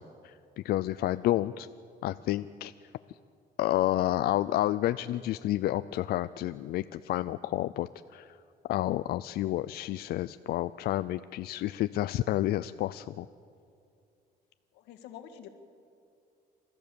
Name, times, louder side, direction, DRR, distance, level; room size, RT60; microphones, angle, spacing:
voice 1, 0.0-1.7 2.0-2.7 3.1-3.2 3.6-8.4 8.7-13.3, left 14 dB, 65° left, 13 dB, 0.4 m, -30 dB
voice 2, 14.7-15.5, left 9 dB, 90° left, 6 dB, 1.8 m, -47 dB
28.5 x 14.0 x 7.0 m, 2.4 s
cardioid pair, 110°, 17 cm